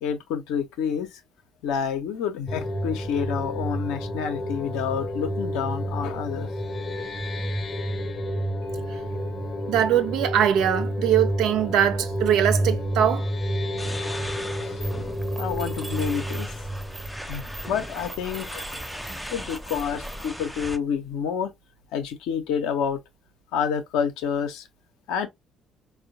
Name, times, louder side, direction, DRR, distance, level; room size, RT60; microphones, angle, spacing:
voice 1, 0.0-1.1 1.6-6.5 14.6-14.7 15.4-16.5 17.3-18.9 19.3-21.5 21.9-23.0 23.5-24.6 25.1-25.3, left 7 dB, 70° left, 0.7 m, -28 dB
sound 1, 2.5-17.9, equal, 35° left, 0.8 m, -30 dB
voice 2, 9.7-13.3, right 10 dB, 65° right, 0.5 m, -22 dB
sound 2, 13.8-20.8, equal, ahead, 0.5 m, -39 dB
Mechanisms, 14.8-20.3, right 1 dB, 20° right, 0.9 m, -40 dB
4.3 x 2.2 x 2.6 m
figure-of-eight pair, 50°, 0 cm